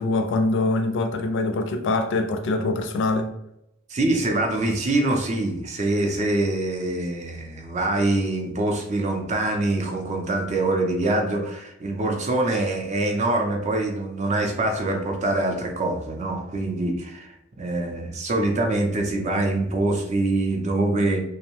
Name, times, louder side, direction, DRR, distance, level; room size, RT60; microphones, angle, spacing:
voice 1, 0.0-3.3, left 2 dB, 60° left, 0.3 m, -24 dB
voice 2, 3.9-21.2, right 2 dB, 35° right, 0.4 m, -24 dB
2.6 x 2.0 x 2.9 m
head